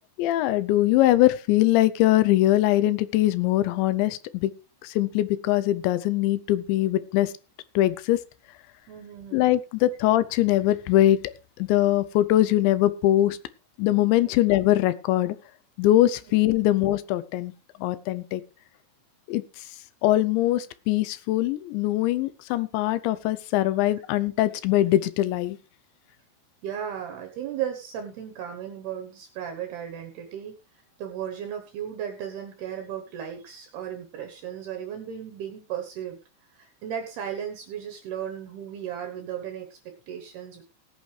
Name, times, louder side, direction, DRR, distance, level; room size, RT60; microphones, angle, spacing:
voice 1, 0.2-4.5 4.8-7.3 7.8-8.2 9.3-11.2 11.6-13.4 13.8-15.4 15.8-17.5 17.8-18.4 19.3-19.6 20.0-25.6, left 14 dB, 85° left, 15 dB, 3.0 m, -22 dB
voice 2, 8.9-9.5 14.2-14.4 26.6-40.6, right 9 dB, 70° right, 4 dB, 2.9 m, -35 dB
18.0 x 9.3 x 3.3 m, 0.31 s
omnidirectional pair, 5.2 m